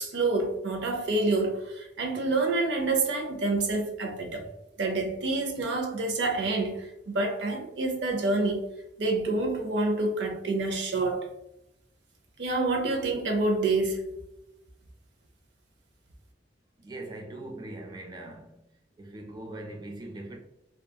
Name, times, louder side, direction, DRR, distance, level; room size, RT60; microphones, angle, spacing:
voice 1, 0.0-4.5 4.8-8.7 9.0-11.3 12.4-14.1, right 2 dB, 85° right, 0.6 m, -27 dB
voice 2, 16.8-18.6 19.0-20.4, right 1 dB, 25° right, 0.3 m, -41 dB
2.8 x 2.3 x 2.3 m
head